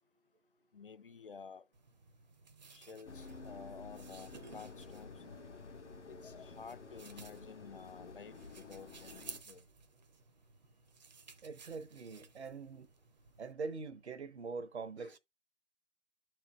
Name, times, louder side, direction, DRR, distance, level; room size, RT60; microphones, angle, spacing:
voice 1, 0.7-1.6 2.7-5.1 6.1-9.2 9.5-9.6 15.0-15.2, left 5 dB, 50° left, 0.4 m, -52 dB
sound 1, 1.7-13.5, right 5 dB, 35° right, 0.7 m, -57 dB
sound 2, 3.1-9.4, left 4 dB, 70° left, 1.4 m, -51 dB
voice 2, 11.4-12.9 13.4-15.2, right 4 dB, 65° right, 0.9 m, -43 dB
13.0 x 4.5 x 2.2 m
figure-of-eight pair, 150°, 36 cm